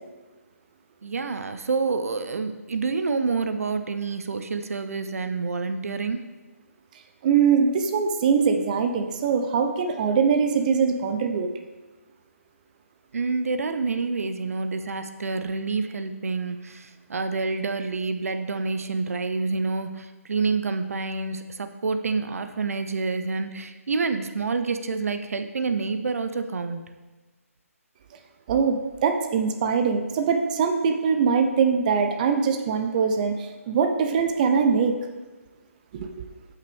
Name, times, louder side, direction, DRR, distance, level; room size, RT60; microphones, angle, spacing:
voice 1, 1.0-6.3 13.1-26.9, right 4 dB, 70° right, 9 dB, 0.7 m, -28 dB
voice 2, 7.2-11.5 28.5-35.0 35.9-36.3, right 6 dB, 30° right, 5 dB, 0.6 m, -22 dB
12.0 x 5.7 x 3.5 m, 1.2 s
hypercardioid pair, 155°, 8 cm